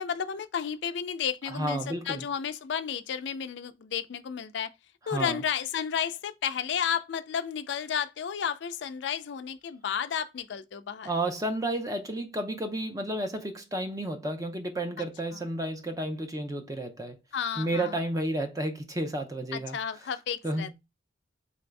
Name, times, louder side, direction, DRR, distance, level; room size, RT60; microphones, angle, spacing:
voice 1, 0.0-4.7 5.1-11.1 17.3-17.9 19.5-20.8, left 7 dB, 65° left, 0.3 m, -32 dB
voice 2, 1.5-2.2 5.1-5.4 11.0-17.2 17.6-19.8 20.4-20.7, right 1 dB, 15° right, 0.5 m, -31 dB
3.8 x 2.6 x 3.2 m
head